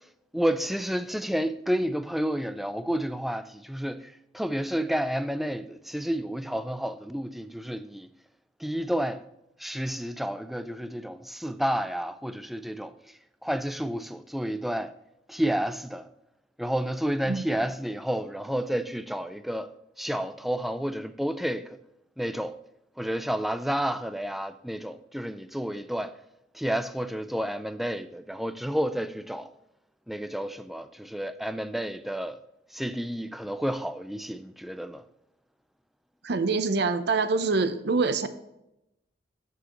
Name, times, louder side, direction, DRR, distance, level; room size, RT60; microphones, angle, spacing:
voice 1, 0.3-8.1 8.6-9.2 9.6-12.9 13.4-14.9 15.3-16.1 16.6-21.8 22.2-22.6 23.0-26.1 26.5-29.5 30.1-32.4 32.7-35.0, equal, ahead, 0.3 m, -30 dB
voice 2, 36.2-38.3, right 4 dB, 65° right, 0.6 m, -25 dB
12.5 x 4.7 x 3.0 m
head